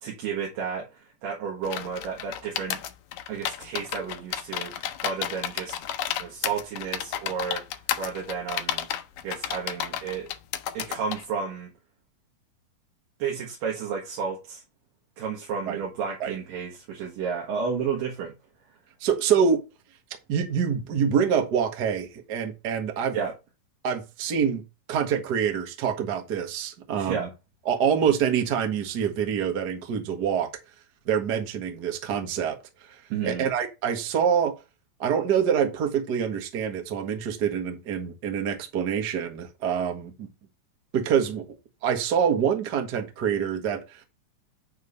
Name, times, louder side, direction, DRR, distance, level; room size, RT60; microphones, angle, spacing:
voice 1, 0.0-2.8 3.3-5.8 6.2-7.7 8.0-8.9 9.2-10.3 10.7-11.7 13.2-14.6 15.2-18.3 23.1-23.3 26.9-27.3 33.1-33.5, right 6 dB, 75° right, 3.2 m, -32 dB
sound 1, 1.6-11.2, left 11 dB, 90° left, 1.6 m, -32 dB
voice 2, 19.0-19.6 20.3-23.2 23.8-24.6 24.9-27.3 27.6-30.5 31.1-32.6 33.2-34.5 35.0-40.3 40.9-41.5 41.8-44.0, right 7 dB, 50° right, 1.2 m, -26 dB
9.2 x 3.2 x 5.5 m
omnidirectional pair, 4.0 m